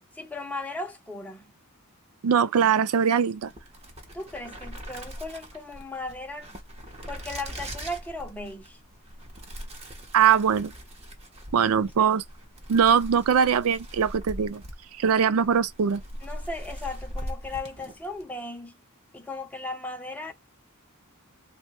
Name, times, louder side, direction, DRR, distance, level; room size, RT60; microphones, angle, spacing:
voice 1, 0.2-1.5 4.1-6.5 7.1-8.8 12.0-12.1 15.4-15.5 16.2-18.7 19.1-20.3, left 2 dB, 5° left, 0.7 m, -36 dB
voice 2, 2.2-3.5 10.1-10.7 11.5-12.2 12.7-14.6 15.0-16.0, right 7 dB, 70° right, 0.4 m, -21 dB
sound 1, 3.4-18.3, equal, 30° right, 0.9 m, -41 dB
3.2 x 2.3 x 2.9 m
head